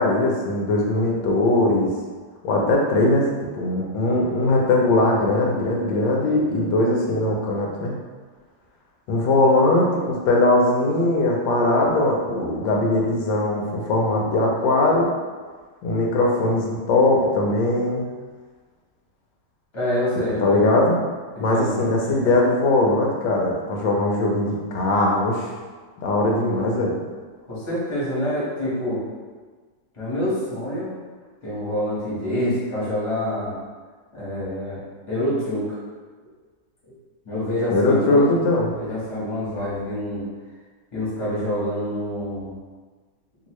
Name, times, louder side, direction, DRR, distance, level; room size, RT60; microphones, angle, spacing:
voice 1, 0.0-1.9 2.4-3.3 3.5-8.0 9.1-15.1 15.8-18.0 20.4-21.0 21.4-25.5 26.0-27.0 37.7-38.8, left 2 dB, 85° left, -1 dB, 1.3 m, -20 dB
voice 2, 19.7-20.8 21.3-22.3 27.5-29.0 29.9-30.9 31.4-33.6 34.1-34.8 35.1-35.8 37.2-38.2 38.7-40.3 40.9-42.5, left 1 dB, 20° left, -10 dB, 1.0 m, -26 dB
3.0 x 2.7 x 3.0 m, 1.4 s
omnidirectional pair, 1.9 m